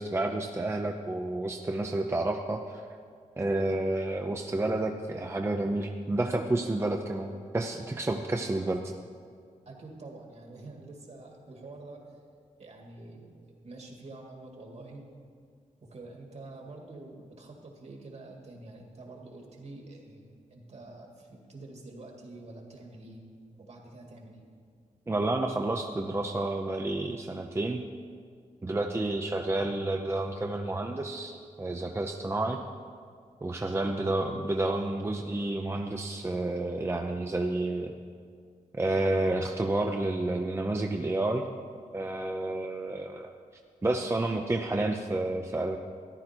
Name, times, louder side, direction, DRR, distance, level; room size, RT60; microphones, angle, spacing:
voice 1, 0.0-2.8 3.4-8.8 25.1-27.8 28.6-32.6 33.4-37.9 38.7-41.4 41.9-43.3 43.8-45.8, right 2 dB, 20° right, 3 dB, 0.6 m, -30 dB
voice 2, 9.7-12.1 12.6-13.3 13.6-15.0 15.8-23.2 23.6-24.4 33.6-34.1, right 2 dB, 55° right, 1 dB, 2.1 m, -47 dB
14.0 x 10.5 x 4.5 m, 2.1 s
wide cardioid pair, 115°, 14 cm